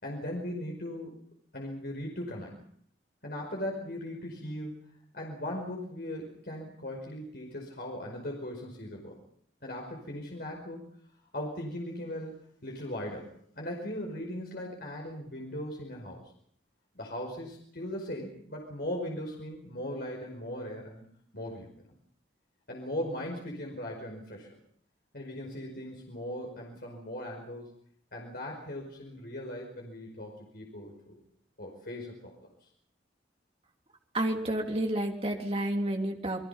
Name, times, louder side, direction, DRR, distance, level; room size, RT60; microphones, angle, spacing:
voice 1, 0.0-1.1 1.5-2.6 3.2-4.7 5.1-9.2 9.6-10.9 11.3-12.4 12.6-16.2 16.9-21.0 21.3-21.7 22.7-24.5 25.1-27.7 28.1-31.2 31.6-32.3, left 1 dB, 55° left, 0 dB, 5.3 m, -38 dB
voice 2, 34.1-36.5, right 1 dB, 30° right, 2 dB, 3.2 m, -30 dB
28.5 x 21.5 x 5.7 m, 0.63 s
head